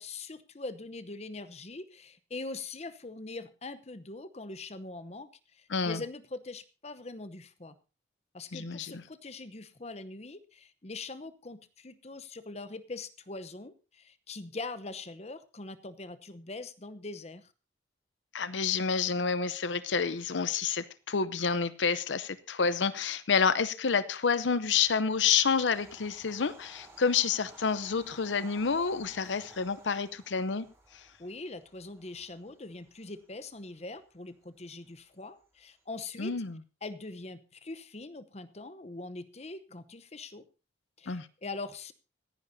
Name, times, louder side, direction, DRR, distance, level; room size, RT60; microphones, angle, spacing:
voice 1, 0.0-7.8 8.3-17.5 31.2-36.3 36.8-40.5 41.0-41.9, left 3 dB, 35° left, 0.8 m, -42 dB
voice 2, 5.7-6.0 8.5-9.0 18.3-30.7 36.2-36.6 41.1-41.3, left 5 dB, 90° left, 0.7 m, -29 dB
Bird vocalization bird call bird song / Train, 24.5-35.7, right 1 dB, 15° right, 4.0 m, -57 dB
25.5 x 10.0 x 2.7 m
head